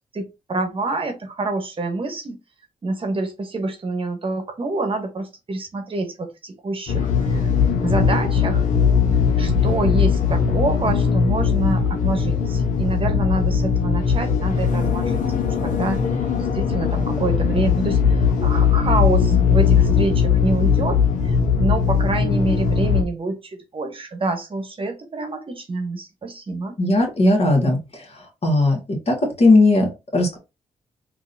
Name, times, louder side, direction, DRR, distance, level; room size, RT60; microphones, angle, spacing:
voice 1, 0.1-2.4 2.8-7.5 7.8-8.6 9.4-15.2 15.6-16.1 16.4-26.8, right 2 dB, 45° right, 0.9 m, -26 dB
sound 1, 6.9-23.0, left 6 dB, 80° left, 0.7 m, -19 dB
voice 2, 26.8-28.0 28.4-30.4, left 2 dB, 50° left, 1.7 m, -18 dB
3.8 x 2.7 x 2.6 m
cardioid pair, 60°, 13 cm